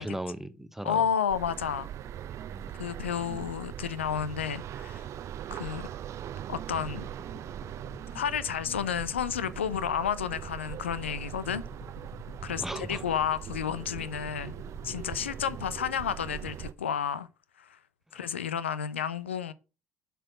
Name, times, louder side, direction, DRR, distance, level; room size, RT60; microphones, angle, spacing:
voice 1, 0.0-1.0 2.5-2.9 12.4-13.0, right 1 dB, 5° right, 0.8 m, -37 dB
voice 2, 0.8-1.9 2.8-5.1 5.5-5.9 6.5-7.0 8.1-11.6 12.4-14.5 14.8-17.3 17.6-17.8 18.1-19.5, left 8 dB, 80° left, 0.4 m, -31 dB
sound 1, 1.3-16.7, right 10 dB, 50° right, 0.6 m, -40 dB
sound 2, 7.0-13.2 13.5-16.5, left 5 dB, 50° left, 1.0 m, -50 dB
7.5 x 4.6 x 5.8 m
figure-of-eight pair, 50°, 6 cm